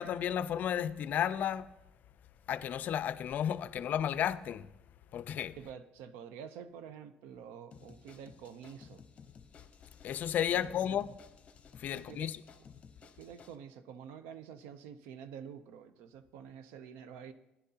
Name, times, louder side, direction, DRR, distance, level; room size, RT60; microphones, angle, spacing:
voice 1, 0.0-1.7 2.5-4.7 5.1-5.6 10.0-11.1 11.8-12.4, left 9 dB, 55° left, 0.4 m, -33 dB
voice 2, 5.6-9.0 10.5-11.0 11.9-12.3 13.0-17.3, right 8 dB, 90° right, 0.6 m, -48 dB
sound 1, 7.7-13.6, left 6 dB, 40° left, 0.8 m, -56 dB
15.0 x 10.5 x 2.8 m
cardioid pair, 115°, 3 cm